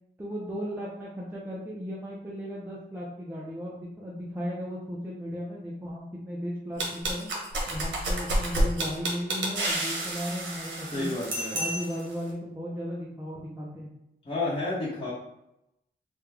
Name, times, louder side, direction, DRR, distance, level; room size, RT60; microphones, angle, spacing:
voice 1, 0.2-7.3 7.7-11.1 11.5-13.9, equal, 10° right, -6 dB, 0.7 m, -36 dB
sound 1, 6.8-12.1, right 1 dB, 85° right, 0.9 m, -30 dB
voice 2, 10.9-11.6 14.2-15.1, left 2 dB, 30° left, -9 dB, 1.1 m, -31 dB
3.4 x 2.4 x 3.3 m, 0.86 s
wide cardioid pair, 100°, 19 cm